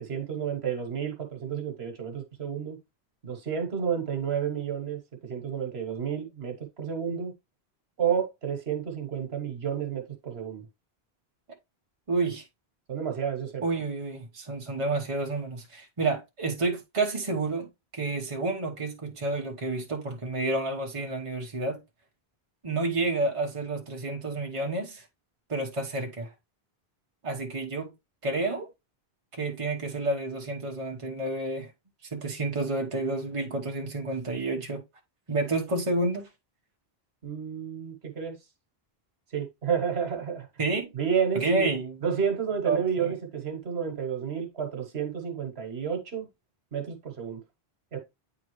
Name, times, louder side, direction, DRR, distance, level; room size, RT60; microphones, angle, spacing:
voice 1, 0.0-2.8 3.2-7.3 8.0-10.6 12.9-13.6 37.2-38.3 39.3-40.5 40.9-41.7 42.0-46.3 46.7-47.4 47.9-48.0, right 7 dB, 80° right, 1.5 m, -31 dB
voice 2, 12.1-12.4 13.6-17.7 17.9-21.8 22.6-25.0 25.5-26.3 27.2-27.9 28.2-28.7 29.4-31.7 32.1-34.8 35.3-36.3 40.6-40.9 41.3-42.0 42.6-43.1, right 2 dB, 30° right, 1.1 m, -30 dB
8.6 x 3.6 x 3.1 m
omnidirectional pair, 1.1 m